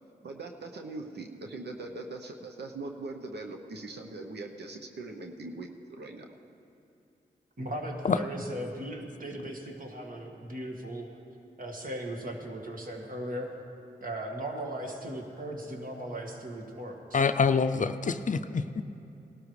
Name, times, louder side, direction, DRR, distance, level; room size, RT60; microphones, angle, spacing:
voice 1, 0.2-6.3, right 2 dB, 70° right, 3 dB, 0.9 m, -41 dB
voice 2, 7.6-11.1 11.6-13.5 14.0-17.3, right 1 dB, 50° right, 1 dB, 1.9 m, -37 dB
voice 3, 17.1-18.8, left 5 dB, 45° left, 10 dB, 0.5 m, -26 dB
19.0 x 12.5 x 3.3 m, 2.8 s
cardioid pair, 45°, 18 cm